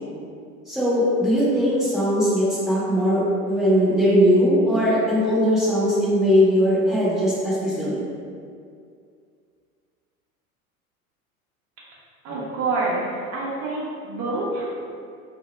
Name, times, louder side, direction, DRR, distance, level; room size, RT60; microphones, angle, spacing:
voice 1, 0.7-8.0, equal, ahead, -11 dB, 0.8 m, -20 dB
voice 2, 12.2-14.7, right 3 dB, 40° right, -6 dB, 0.6 m, -27 dB
2.0 x 2.0 x 3.2 m, 2.3 s
figure-of-eight pair, 75°, 42 cm